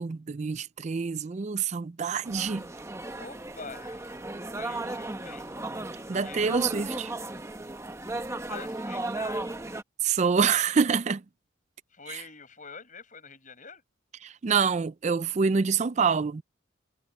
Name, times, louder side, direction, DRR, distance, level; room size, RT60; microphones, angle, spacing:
voice 1, 0.0-2.6 6.1-7.1 10.0-11.2 12.1-12.2 14.2-16.4, right 5 dB, 35° right, 0.4 m, -26 dB
sound 1, 2.2-9.8, right 2 dB, 15° right, 1.0 m, -35 dB
voice 2, 3.2-4.3 4.6-5.5 6.2-6.4 6.7-6.8 8.3-9.5 11.9-13.8, left 5 dB, 40° left, 7.8 m, -45 dB
head